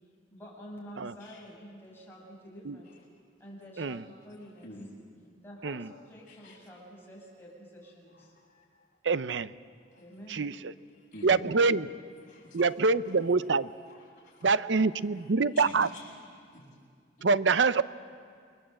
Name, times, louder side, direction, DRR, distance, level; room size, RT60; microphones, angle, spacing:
voice 1, 0.3-2.9 3.4-4.7 5.4-8.3 10.0-10.5, equal, 15° left, -3 dB, 6.1 m, -48 dB
voice 2, 8.3-8.9 9.9-10.0 11.0-11.5 12.3-12.6 13.0-13.2 13.9-14.5 15.5-16.7 17.2-17.3, left 1 dB, 45° left, -4 dB, 6.9 m, -48 dB
voice 3, 9.0-9.5 10.3-10.7 11.2-11.9 12.5-13.7 14.4-15.9 17.2-17.8, right 4 dB, 90° right, 15 dB, 0.6 m, -25 dB
28.5 x 21.5 x 7.7 m, 2.2 s
head